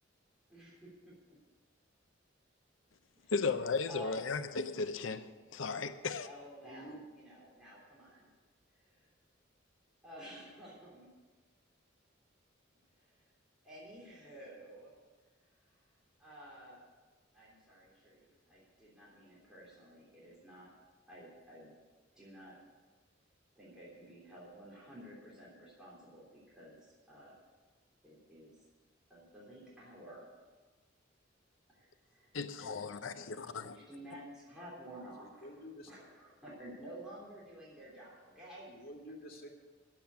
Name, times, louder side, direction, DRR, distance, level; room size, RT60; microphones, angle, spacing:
voice 1, 0.5-1.1 3.1-3.3 3.9-4.5 6.2-8.3 8.7-9.1 10.0-11.1 12.9-13.3 13.6-14.9 16.2-16.8 17.3-20.7 21.1-21.7 22.1-22.6 23.6-26.8 27.1-27.3 28.0-28.5 29.1-30.3 32.6-32.7 33.0-35.5 35.9-38.7, equal, 5° right, 3.4 m, -52 dB
voice 2, 3.3-6.3 32.3-33.8 34.1-34.2, left 4 dB, 85° left, 0.6 m, -36 dB
voice 3, 6.6-7.0 35.2-35.9 38.7-39.5, equal, 50° left, 2.2 m, -49 dB
10.5 x 7.5 x 9.5 m
head